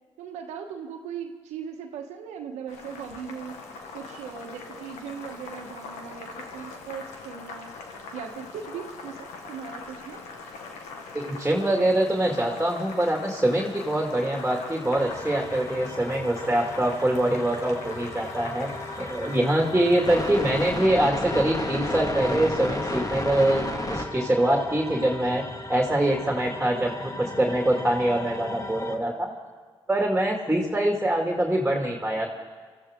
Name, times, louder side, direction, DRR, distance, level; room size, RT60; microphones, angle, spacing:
voice 1, 0.2-3.6 3.9-7.7 8.1-10.2, right 7 dB, 85° right, 4 dB, 1.3 m, -38 dB
Boiling, 2.7-20.9, left 4 dB, 85° left, 1.6 m, -41 dB
voice 2, 11.1-18.7 19.0-25.4 25.7-26.9 27.2-29.3 29.9-32.3, right 1 dB, 10° right, 0 dB, 2.4 m, -24 dB
sound 1, 14.9-29.0, left 1 dB, 30° left, 1.9 m, -34 dB
24.0 x 14.0 x 3.7 m, 1.5 s
supercardioid pair, 55°, 12 cm